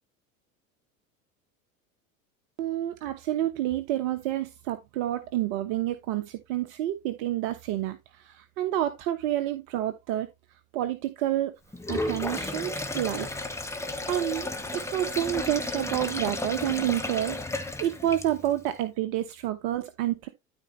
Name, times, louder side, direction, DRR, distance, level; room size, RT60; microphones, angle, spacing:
voice 1, 2.6-10.3 10.7-11.5 11.9-13.3 14.1-20.3, right 13 dB, 55° right, 1.0 m, -29 dB
Sink (filling or washing), 11.7-18.6, left 2 dB, 5° left, 1.6 m, -33 dB
12.5 x 4.4 x 3.0 m
hypercardioid pair, 75°, 42 cm